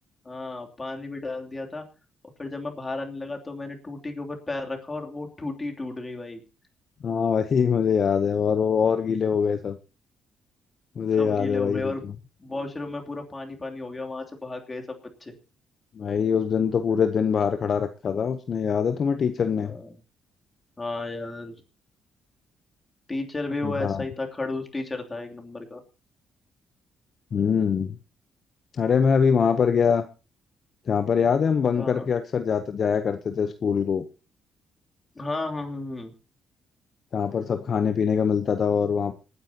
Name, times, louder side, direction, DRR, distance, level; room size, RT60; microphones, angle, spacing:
voice 1, 0.2-1.8 2.4-6.4 11.2-12.1 12.4-15.3 19.5-20.0 20.8-21.5 23.1-25.8 31.8-32.1 35.1-36.1, left 2 dB, 25° left, 2 dB, 2.9 m, -33 dB
voice 2, 7.0-9.8 11.0-11.9 16.0-19.8 23.6-24.0 27.3-28.0 28.8-30.0 30.9-34.0 37.1-39.1, left 6 dB, 50° left, 9 dB, 0.8 m, -23 dB
26.0 x 9.5 x 2.9 m, 0.31 s
cardioid pair, 90°, 0 cm